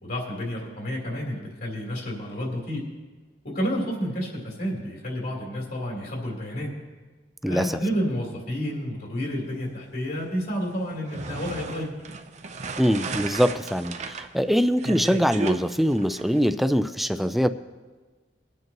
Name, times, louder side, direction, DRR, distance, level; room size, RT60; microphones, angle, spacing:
voice 1, 0.0-2.8 3.4-6.7 7.4-12.0, equal, 55° left, -2 dB, 3.5 m, -30 dB
voice 2, 7.4-7.8 12.8-17.5, equal, ahead, 11 dB, 0.4 m, -23 dB
sound 1, 10.9-16.4, right 3 dB, 40° right, 0.7 m, -35 dB
21.0 x 9.4 x 3.0 m, 1.3 s
head